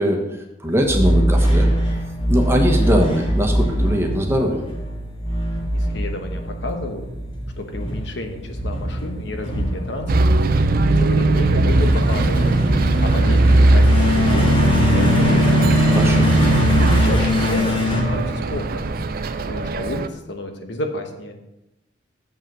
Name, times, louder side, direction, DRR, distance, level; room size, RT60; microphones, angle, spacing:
voice 1, 0.0-1.7 2.3-4.6 15.9-16.3, equal, 15° right, 2 dB, 1.2 m, -21 dB
sound 1, 0.8-18.9, left 1 dB, 30° left, 1.9 m, -22 dB
voice 2, 5.7-7.1 7.6-10.5 10.9-12.4 13.0-15.6 16.7-18.9 19.5-21.5, left 1 dB, 70° left, 5 dB, 1.1 m, -31 dB
Bus, 10.1-20.1, right 2 dB, 55° right, 0.4 m, -18 dB
7.5 x 5.6 x 6.1 m, 0.93 s
head